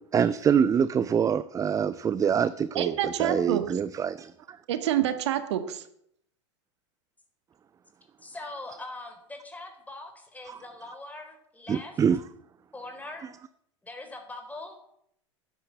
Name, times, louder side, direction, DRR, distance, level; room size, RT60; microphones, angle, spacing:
voice 1, 0.1-4.6 10.5-10.6 11.7-12.2, right 7 dB, 20° right, 16 dB, 0.5 m, -25 dB
voice 2, 2.7-3.6 4.7-5.8, right 11 dB, 65° right, 10 dB, 1.6 m, -27 dB
voice 3, 8.2-11.9 12.7-13.3 13.8-14.8, left 2 dB, 10° left, 4 dB, 4.3 m, -42 dB
13.0 x 9.8 x 8.1 m, 0.72 s
figure-of-eight pair, 85°, 16 cm